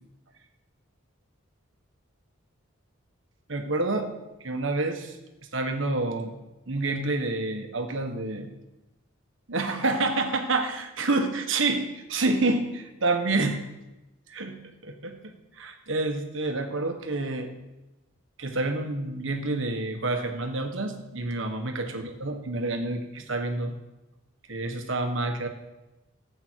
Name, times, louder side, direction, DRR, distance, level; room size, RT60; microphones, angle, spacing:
voice 1, 3.5-4.1 4.4-5.2 5.5-6.3 6.7-8.5 9.5-13.6 14.3-14.6 14.8-17.5 18.4-23.8 24.5-25.5, right 2 dB, 65° right, 5 dB, 1.5 m, -28 dB
14.5 x 8.1 x 4.7 m, 1.0 s
head